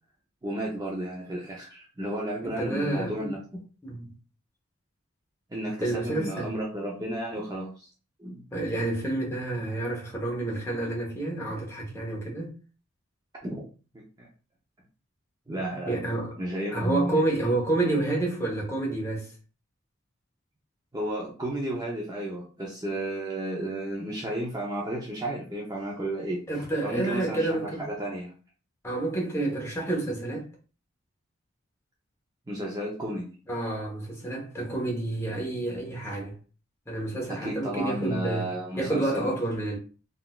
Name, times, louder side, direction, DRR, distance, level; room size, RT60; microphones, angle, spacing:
voice 1, 0.4-3.6 5.5-7.9 8.2-8.4 13.4-13.6 13.9-14.3 15.5-16.0 16.4-17.2 20.9-26.4 26.8-28.3 32.5-33.3 37.3-39.3, right 1 dB, 20° right, 0.6 m, -33 dB
voice 2, 2.4-3.4 3.8-4.1 5.8-6.6 8.5-12.5 15.9-16.3 16.7-19.3 26.5-27.8 28.8-30.5 33.5-36.3 36.9-38.5 38.8-39.8, right 2 dB, 15° left, 0.9 m, -29 dB
3.8 x 2.5 x 2.3 m
head